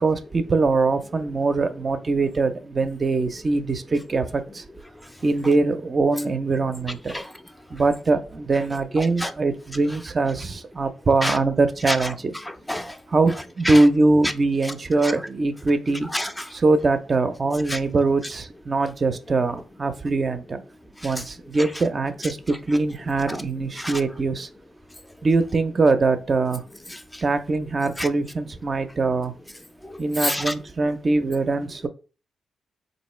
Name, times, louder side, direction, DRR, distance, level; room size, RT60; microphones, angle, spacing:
voice 1, 0.0-4.2 5.2-7.1 7.7-12.3 13.1-16.1 16.6-20.6 21.0-21.2 21.5-22.4 22.7-24.5 25.2-26.6 27.2-29.3 30.0-31.9, right 3 dB, 45° right, 0.4 m, -22 dB
voice 2, 9.0-9.3 11.2-11.4 11.9-12.1 12.4-13.0 13.6-13.8 14.6-14.7 15.0-15.1 16.1-16.5 17.7-17.8 21.0-21.2 23.3-23.4 23.8-24.0 26.9-27.2 28.0-28.1 29.8-30.5, left 1 dB, 10° left, 0.4 m, -29 dB
3.5 x 2.6 x 3.1 m
supercardioid pair, 55°, 0 cm